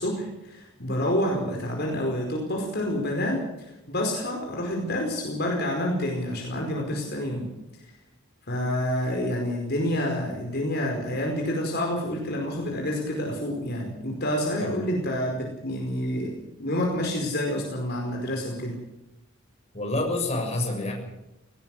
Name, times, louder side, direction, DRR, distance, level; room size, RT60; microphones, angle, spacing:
voice 1, 0.0-3.4 3.9-7.5 8.5-18.8, left 1 dB, 50° left, 0 dB, 4.9 m, -28 dB
voice 2, 19.7-20.9, left 2 dB, 30° left, 1 dB, 6.5 m, -27 dB
19.5 x 18.0 x 7.9 m, 0.92 s
head